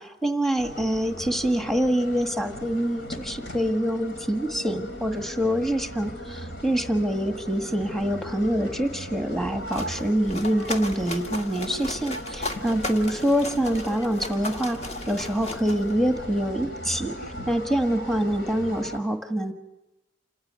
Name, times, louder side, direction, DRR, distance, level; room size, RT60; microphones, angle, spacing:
voice 1, 0.0-19.5, equal, ahead, 5 dB, 1.5 m, -26 dB
sound 1, 0.6-19.0, equal, 75° left, 3.3 m, -38 dB
sound 2, 9.4-16.4, left 2 dB, 35° left, 2.0 m, -36 dB
28.5 x 15.0 x 9.6 m, 0.96 s
head